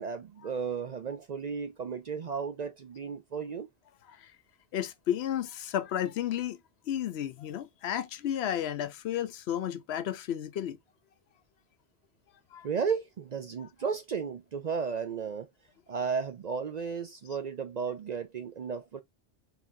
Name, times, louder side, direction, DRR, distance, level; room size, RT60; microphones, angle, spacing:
voice 1, 0.0-3.7 12.6-15.5 15.9-19.0, right 6 dB, 55° right, 0.5 m, -34 dB
voice 2, 4.7-6.6 6.9-10.8 12.5-12.7 13.6-13.7, left 10 dB, 75° left, 0.8 m, -32 dB
4.4 x 3.6 x 2.6 m
omnidirectional pair, 1.1 m